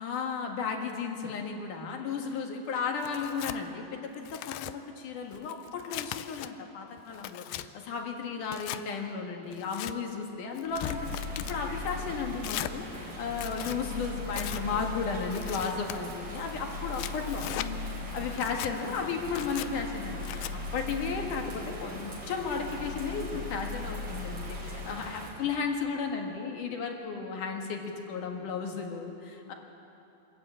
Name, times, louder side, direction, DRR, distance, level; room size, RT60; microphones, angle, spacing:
voice 1, 0.0-20.5 20.7-29.5, left 5 dB, 65° left, 2 dB, 3.0 m, -34 dB
Tearing, 3.0-3.6 4.1-4.7 5.3-6.5 7.0-7.7 8.4-8.8 9.5-9.9 10.6-11.6 12.4-12.7 13.3-13.8 14.3-14.6 15.3-16.0 16.7-17.7 18.3-18.7 19.3-19.7 20.2-20.5, left 14 dB, 80° left, 2.2 m, -38 dB
Bird vocalization bird call bird song / Rain, 10.7-25.3, left 2 dB, 50° right, 5.5 m, -38 dB
25.0 x 14.0 x 8.8 m, 2.8 s
omnidirectional pair, 4.3 m